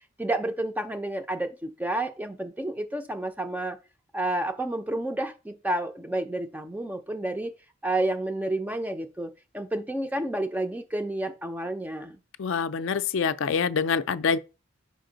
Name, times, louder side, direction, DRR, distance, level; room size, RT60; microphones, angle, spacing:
voice 1, 0.2-3.8 4.1-7.6 7.8-12.2, right 1 dB, 5° right, 0.4 m, -30 dB
voice 2, 12.4-14.4, left 6 dB, 60° left, 0.4 m, -25 dB
5.1 x 4.9 x 3.8 m
head